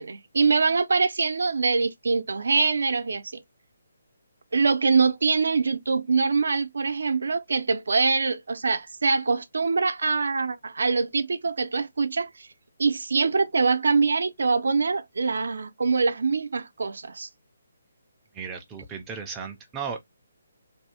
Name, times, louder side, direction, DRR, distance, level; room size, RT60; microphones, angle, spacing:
voice 1, 0.0-3.3 4.5-12.5 12.8-17.3, right 4 dB, 75° right, 0.4 m, -24 dB
voice 2, 18.3-20.0, right 6 dB, 10° right, 0.3 m, -35 dB
2.5 x 2.0 x 2.7 m
hypercardioid pair, 175°, 0 cm